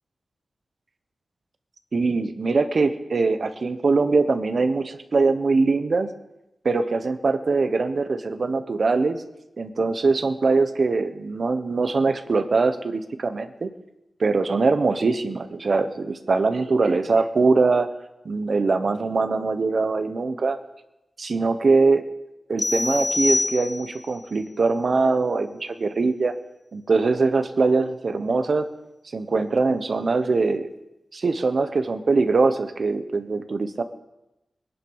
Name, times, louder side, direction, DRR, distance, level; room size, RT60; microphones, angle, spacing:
voice 1, 1.9-6.1 6.6-9.2 9.6-13.7 14.2-17.9 18.2-20.6 21.2-22.0 22.5-26.3 26.7-28.7 29.1-30.7 31.1-33.8, right 3 dB, 45° right, 9 dB, 1.1 m, -22 dB
sound 1, 22.6-24.1, left 2 dB, 25° left, 0.6 m, -25 dB
21.0 x 10.0 x 5.6 m, 0.92 s
wide cardioid pair, 170°, 0 cm